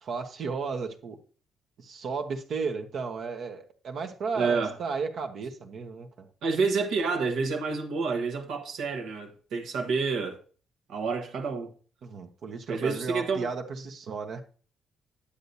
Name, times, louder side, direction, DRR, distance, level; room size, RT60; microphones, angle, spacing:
voice 1, 0.0-1.2 1.8-6.3 12.0-14.4, right 5 dB, 65° right, 1.2 m, -34 dB
voice 2, 4.3-4.8 6.4-10.4 10.9-11.7 12.7-13.5, right 4 dB, 80° right, 1.5 m, -28 dB
10.0 x 8.2 x 2.7 m
cardioid pair, 90°, 0 cm